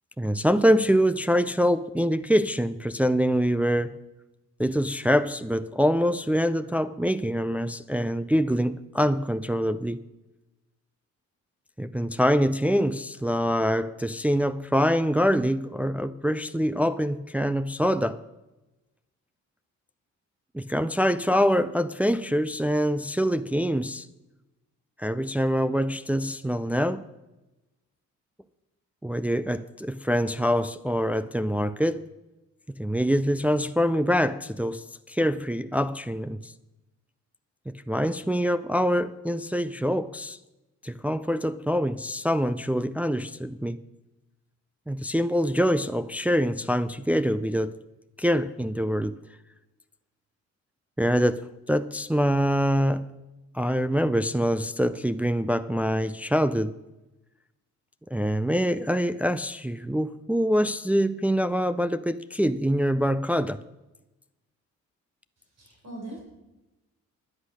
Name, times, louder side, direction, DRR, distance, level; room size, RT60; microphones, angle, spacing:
voice 1, 0.2-4.0 4.6-10.0 11.8-18.2 20.5-24.1 25.0-27.0 29.0-32.1 32.8-36.5 37.7-40.4 40.8-43.8 44.9-47.8 48.2-49.1 51.0-53.1 53.5-56.7 58.1-63.6, equal, 5° right, 0.4 m, -25 dB
voice 2, 65.6-66.2, right 2 dB, 55° right, 5.2 m, -40 dB
11.5 x 8.4 x 6.4 m
cardioid pair, 90°, 30 cm